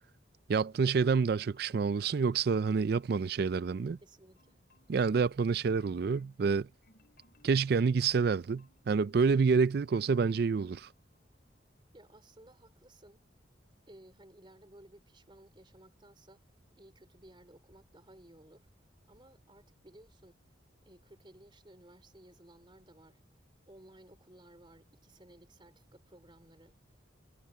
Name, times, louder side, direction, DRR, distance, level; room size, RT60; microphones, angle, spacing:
voice 1, 0.5-4.0 4.9-6.7 7.4-10.9, right 5 dB, 50° right, 0.3 m, -28 dB
Marimba xylophone, 1.5-2.3 2.6-4.0 4.4-5.1 5.5-9.6 10.0-10.7 11.1-11.3, left 1 dB, 50° left, 7.1 m, -69 dB
voice 2, 4.0-4.6 11.9-13.3 13.9-16.5 16.8-18.7 19.1-20.4 20.8-27.0, right 1 dB, 25° right, 3.8 m, -58 dB
head